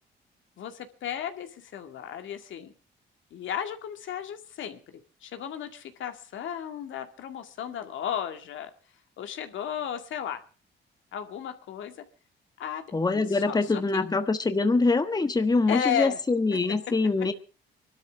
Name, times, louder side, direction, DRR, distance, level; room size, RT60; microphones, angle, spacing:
voice 1, 0.6-2.7 3.3-4.8 5.2-8.7 9.2-10.4 11.1-11.9 12.6-12.9 13.1-14.0 15.7-16.2, left 9 dB, 75° left, 2.2 m, -34 dB
voice 2, 12.9-17.3, left 3 dB, 20° left, 1.4 m, -24 dB
24.0 x 12.5 x 3.7 m
cardioid pair, 90°, 20 cm